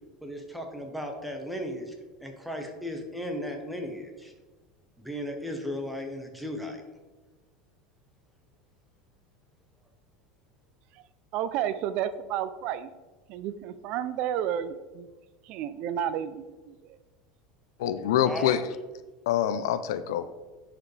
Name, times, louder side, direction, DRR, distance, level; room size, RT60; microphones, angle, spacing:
voice 1, 0.2-4.3 5.0-6.8 18.2-18.6, equal, ahead, 3 dB, 1.1 m, -36 dB
voice 2, 11.3-12.9 13.3-15.1 15.4-17.0, right 10 dB, 50° right, 13 dB, 0.4 m, -31 dB
voice 3, 17.8-18.6 19.3-20.3, left 10 dB, 90° left, 12 dB, 0.5 m, -25 dB
10.0 x 4.9 x 3.3 m, 1.2 s
supercardioid pair, 140°, 2 cm